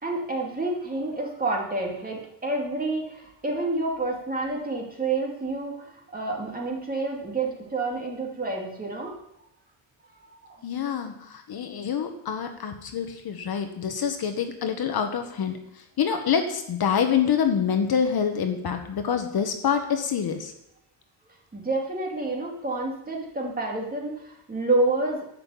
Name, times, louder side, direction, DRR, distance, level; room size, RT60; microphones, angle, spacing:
voice 1, 0.0-9.2 10.2-10.6 21.5-25.2, right 2 dB, 20° right, -1 dB, 2.5 m, -29 dB
voice 2, 10.6-20.5, left 7 dB, 50° left, 6 dB, 1.2 m, -26 dB
12.0 x 5.8 x 8.5 m, 0.77 s
cardioid pair, 165°, 48 cm